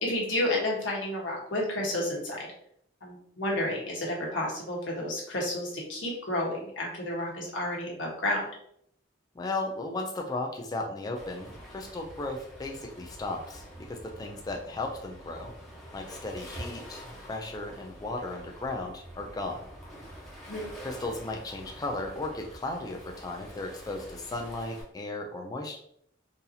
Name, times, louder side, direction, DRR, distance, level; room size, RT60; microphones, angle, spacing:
voice 1, 0.0-2.5 3.0-8.4 20.5-20.7, left 1 dB, 90° left, -2 dB, 1.2 m, -31 dB
voice 2, 9.4-15.5 15.9-19.7 20.8-25.8, left 2 dB, 20° left, 1 dB, 0.3 m, -35 dB
Waves surf, 11.1-24.8, equal, ahead, 0.9 m, -46 dB
3.9 x 2.7 x 2.7 m, 0.69 s
head